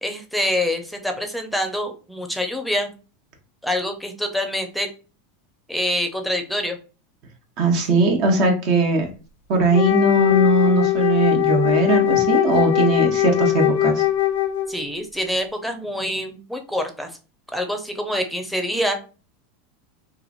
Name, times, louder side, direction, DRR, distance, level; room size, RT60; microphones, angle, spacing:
voice 1, 0.0-2.9 3.6-4.9 5.7-6.8 7.7-7.9 14.7-17.1 17.5-18.9, left 1 dB, ahead, 5 dB, 0.6 m, -26 dB
voice 2, 7.6-9.1 9.5-14.0, right 2 dB, 55° right, 2 dB, 0.8 m, -19 dB
Wind instrument woodwind instrument, 9.7-14.9, left 14 dB, 75° left, 0.5 m, -20 dB
2.9 x 2.5 x 2.4 m, 0.35 s
hypercardioid pair, 105°, 0 cm